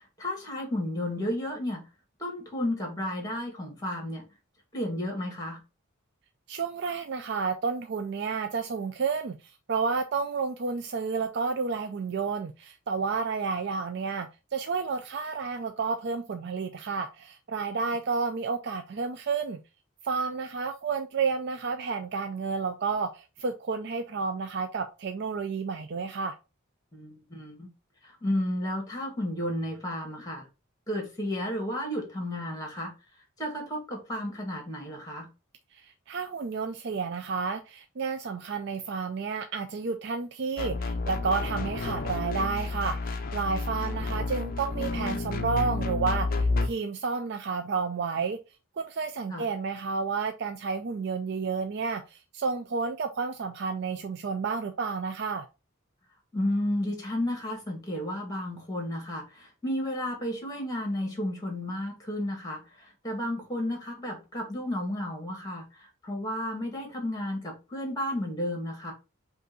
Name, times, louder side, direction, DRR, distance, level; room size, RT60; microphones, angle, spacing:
voice 1, 0.2-1.8 2.2-4.2 4.7-5.6 26.9-27.7 28.0-30.5 30.9-32.9 33.4-35.3 49.3-49.5 56.3-65.6 66.0-68.9, left 1 dB, 15° left, 1.7 m, -32 dB
voice 2, 6.5-9.4 9.7-19.6 20.0-26.4 35.8-48.4 48.8-55.5, right 5 dB, 55° right, 0.4 m, -31 dB
sound 1, 40.6-46.7, left 3 dB, 40° left, 0.5 m, -30 dB
5.3 x 2.6 x 3.8 m
head